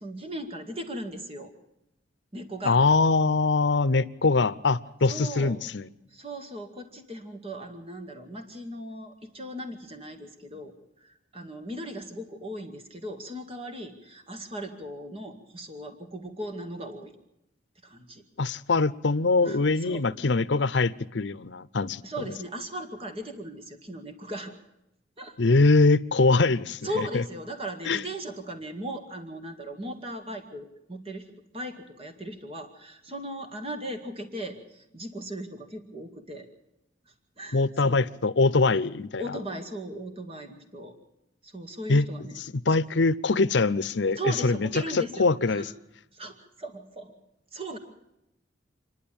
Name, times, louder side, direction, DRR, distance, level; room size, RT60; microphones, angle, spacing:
voice 1, 0.0-1.5 2.3-2.8 5.0-5.6 6.1-17.1 17.8-18.2 19.4-20.0 22.0-24.5 25.2-25.6 26.8-36.5 37.1-38.0 39.2-41.0 41.4-42.4 44.2-45.7 46.1-47.1 47.5-47.8, right 1 dB, 30° right, 2.1 m, -38 dB
voice 2, 2.6-5.9 18.4-22.0 25.4-26.8 27.1-27.2 27.9-28.0 37.5-39.4 41.9-42.1 42.7-44.7 44.9-45.6, left 3 dB, 75° left, 0.7 m, -23 dB
27.5 x 11.0 x 8.7 m
head